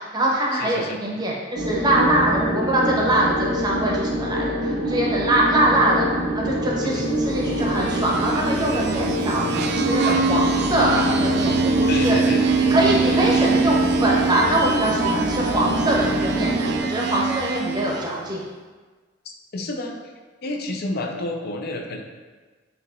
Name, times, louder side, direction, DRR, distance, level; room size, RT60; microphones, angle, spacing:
voice 1, 0.0-6.1 6.3-12.2 12.6-18.4, right 1 dB, 20° right, -3 dB, 0.7 m, -23 dB
voice 2, 0.5-1.0 6.8-7.1 11.9-12.5 19.5-19.9 20.4-22.0, left 2 dB, 50° left, 2 dB, 0.5 m, -29 dB
sound 1, 1.6-16.8, equal, 85° right, 0.7 m, -25 dB
sound 2, 7.4-18.2, right 4 dB, 60° right, 0.4 m, -24 dB
6.6 x 2.8 x 2.4 m, 1.4 s
head